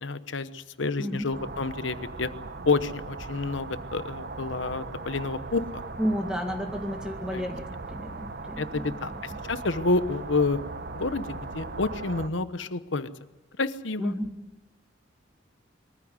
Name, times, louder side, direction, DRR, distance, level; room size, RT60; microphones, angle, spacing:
voice 1, 0.0-2.3 2.6-5.8 7.3-7.4 8.6-10.6 10.9-13.1 13.6-14.1, left 3 dB, 70° left, 13 dB, 1.0 m, -29 dB
voice 2, 1.0-1.3 6.0-9.4 14.0-14.3, equal, 5° right, 3 dB, 1.9 m, -32 dB
sound 1, 1.3-12.3, right 3 dB, 50° right, 1.0 m, -39 dB
23.0 x 14.5 x 9.6 m, 1.0 s
head